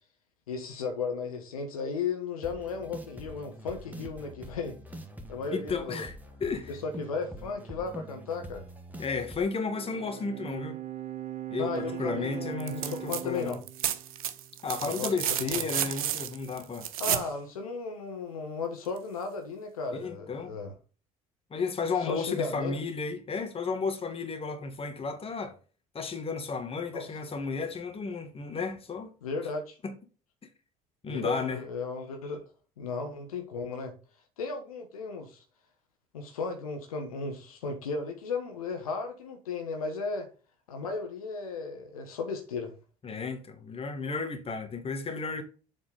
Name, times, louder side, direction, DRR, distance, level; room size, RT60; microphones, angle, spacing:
voice 1, 0.5-4.8 5.3-6.1 6.7-8.6 11.5-13.6 14.8-15.7 17.0-20.7 22.0-22.8 26.9-27.1 29.2-29.8 31.1-32.4 32.8-33.9 34.4-35.4 36.1-40.3 40.7-42.7, left 4 dB, 80° left, 1.2 m, -35 dB
sound 1, 2.4-9.4, right 1 dB, 10° right, 1.6 m, -45 dB
voice 2, 5.5-6.1 6.4-6.7 9.0-10.8 11.5-13.6 14.6-16.9 19.9-20.6 21.5-25.6 25.9-29.1 29.8-30.0 31.0-31.6 43.0-45.4, left 4 dB, 30° left, 1.9 m, -33 dB
Bowed string instrument, 9.4-15.0, right 13 dB, 40° right, 1.3 m, -40 dB
sound 2, 12.6-13.2 13.5-17.3 19.0-19.1, right 10 dB, 80° right, 0.8 m, -31 dB
7.5 x 4.3 x 5.2 m
hypercardioid pair, 60°, 18 cm